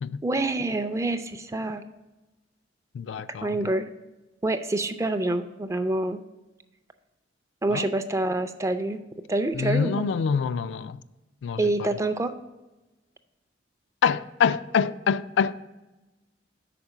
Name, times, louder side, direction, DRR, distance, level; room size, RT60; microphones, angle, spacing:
voice 1, 0.2-1.8 3.4-3.9 4.4-6.2 7.6-9.0 9.3-10.0 11.6-12.3, right 2 dB, 15° right, 0.4 m, -26 dB
voice 2, 2.9-3.6 7.7-7.9 9.5-11.0 11.4-11.9 14.0-15.7, left 6 dB, 75° left, 0.3 m, -26 dB
5.9 x 4.4 x 6.5 m
head